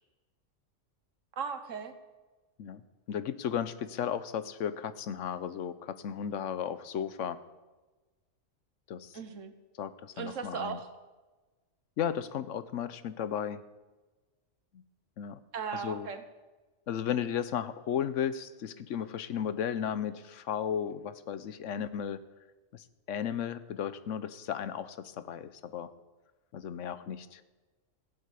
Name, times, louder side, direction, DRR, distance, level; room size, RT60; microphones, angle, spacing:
voice 1, 1.4-1.9 9.1-9.5 10.2-10.9 15.5-16.2, right 6 dB, 75° right, 9 dB, 1.5 m, -37 dB
voice 2, 3.1-7.4 8.9-9.2 9.8-10.8 12.0-13.6 14.7-14.8 15.2-15.4 15.8-16.1 16.9-22.2 23.1-25.9 26.5-27.4, left 8 dB, 75° left, 14 dB, 1.0 m, -34 dB
15.0 x 8.0 x 8.3 m, 1.2 s
omnidirectional pair, 1.3 m